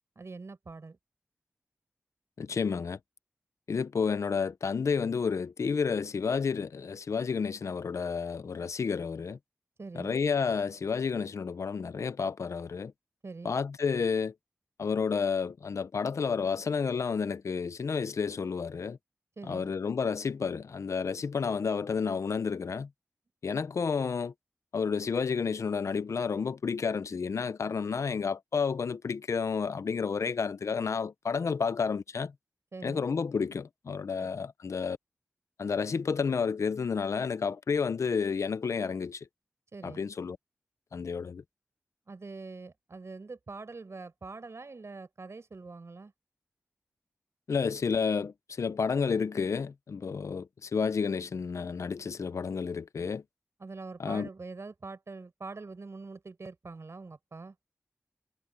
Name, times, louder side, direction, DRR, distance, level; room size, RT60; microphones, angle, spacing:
voice 1, 0.2-1.0 9.8-10.1 13.2-13.6 19.4-19.7 32.7-33.0 34.2-34.4 39.7-40.1 42.1-46.1 53.6-57.5, right 3 dB, 65° right, 5.6 m, -44 dB
voice 2, 2.4-3.0 3.7-9.4 9.9-12.9 13.4-14.3 14.8-19.0 19.4-22.9 23.4-24.3 24.7-32.3 32.8-35.0 35.6-39.2 39.8-40.4 40.9-41.4 47.5-53.2 54.0-54.3, left 5 dB, 85° left, 0.7 m, -31 dB
cardioid pair, 40°, 5 cm